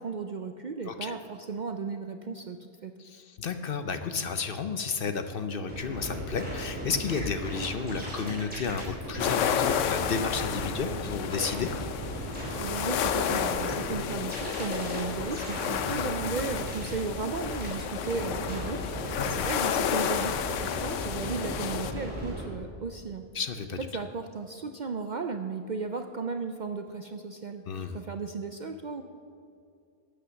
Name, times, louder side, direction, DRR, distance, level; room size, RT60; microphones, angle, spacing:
voice 1, 0.0-2.9 12.6-23.3 23.9-27.6 27.9-29.0, right 4 dB, 55° right, 7 dB, 0.5 m, -35 dB
voice 2, 0.9-1.2 3.0-11.7 15.8-16.0 19.2-19.5 23.3-23.8 27.7-27.9, left 5 dB, 55° left, 9 dB, 0.8 m, -32 dB
sound 1, 5.7-22.4, equal, 5° right, 3.9 m, -37 dB
Ocean Lake Sea Shore Waves, 9.2-21.9, left 8 dB, 80° left, 1.0 m, -31 dB
12.5 x 8.5 x 6.9 m, 2.4 s
omnidirectional pair, 1.3 m